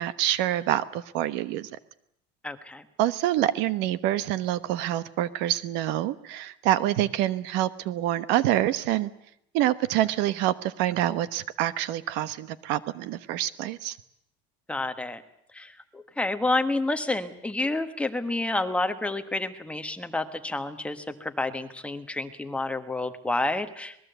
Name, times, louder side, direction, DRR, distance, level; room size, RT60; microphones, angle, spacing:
voice 1, 0.0-1.7 3.0-9.1 9.5-14.0, right 13 dB, 65° right, 15 dB, 1.1 m, -26 dB
voice 2, 2.4-2.8 14.7-15.2 15.5-24.0, left 2 dB, 5° left, 7 dB, 1.4 m, -29 dB
26.0 x 20.0 x 8.1 m, 0.74 s
cardioid pair, 140°, 20 cm